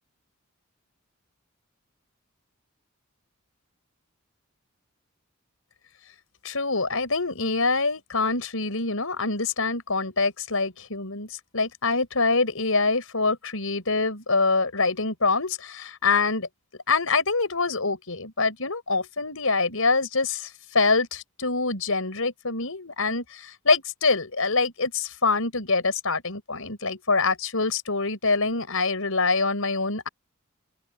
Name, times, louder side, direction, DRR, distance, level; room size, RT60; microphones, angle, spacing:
voice 1, 6.4-16.5 16.9-30.1, left 3 dB, 75° left, 5.6 m, -25 dB
open air
head